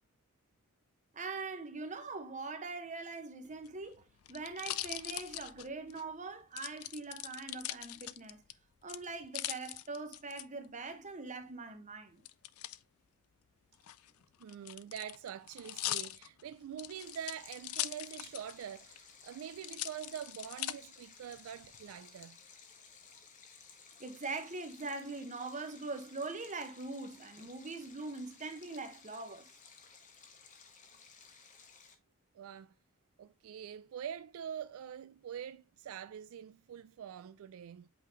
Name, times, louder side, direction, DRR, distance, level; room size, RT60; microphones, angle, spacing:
voice 1, 1.1-8.4 8.8-12.2 24.0-29.5, right 3 dB, 35° right, 1.0 m, -42 dB
sound 1, 3.5-6.0 6.6-8.5 8.9-10.4 12.3-12.8 13.7-18.6 19.0-19.1 19.6-20.7 21.4-21.9, left 15 dB, 80° left, 0.4 m, -41 dB
voice 2, 14.4-22.4 32.3-32.7 33.2-37.9, right 9 dB, 70° right, 0.3 m, -45 dB
Stream, 16.9-31.9, left 5 dB, 35° left, 1.1 m, -57 dB
8.3 x 3.8 x 3.0 m
head